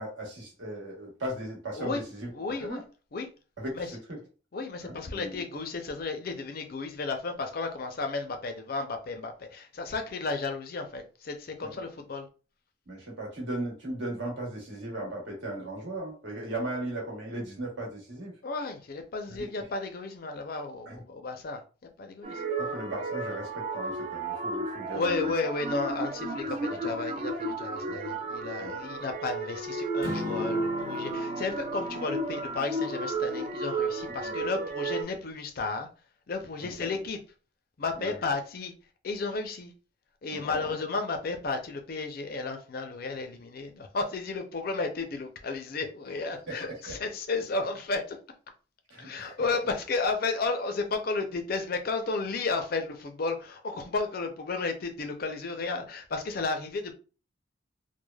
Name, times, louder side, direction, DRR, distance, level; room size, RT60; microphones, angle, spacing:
voice 1, 0.0-2.3 2.6-2.8 3.6-4.2 4.8-5.4 11.6-11.7 12.9-18.3 19.3-19.7 20.9-21.0 22.6-25.3 26.7-26.8 27.8-28.0 28.6-28.7 34.2-34.3 36.6-36.9 38.0-38.1 40.3-40.6 46.5-46.9 48.9-49.4, right 1 dB, 70° right, 1.1 m, -37 dB
voice 2, 2.3-2.8 3.1-3.3 3.7-3.9 4.5-12.3 18.4-21.6 22.0-22.4 24.9-35.9 36.3-37.2 37.8-38.7 39.0-39.7 40.2-48.2 49.0-56.9, left 3 dB, 50° left, 0.4 m, -33 dB
sound 1, 22.2-35.0, right 2 dB, 35° right, 0.4 m, -33 dB
Acoustic guitar / Strum, 30.0-34.5, left 2 dB, 15° right, 0.8 m, -42 dB
3.2 x 2.1 x 2.2 m
head